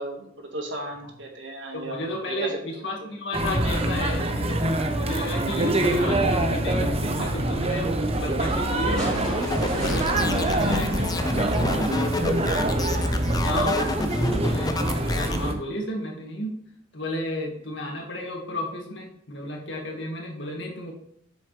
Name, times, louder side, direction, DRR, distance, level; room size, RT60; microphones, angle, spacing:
voice 1, 0.0-2.6 3.0-3.1 10.7-10.8, right 2 dB, 80° right, 2 dB, 1.7 m, -35 dB
voice 2, 1.7-12.6 13.4-13.8 14.3-16.6 16.9-20.9, left 1 dB, 75° left, 0 dB, 2.0 m, -33 dB
sound 1, 3.3-15.5, right 1 dB, 35° right, 0.9 m, -25 dB
sound 2, 9.0-12.3 13.6-13.7, equal, 5° left, 3.0 m, -38 dB
sound 3, 9.4-15.4, left 2 dB, 20° left, 0.6 m, -29 dB
8.0 x 6.5 x 3.3 m, 0.71 s
head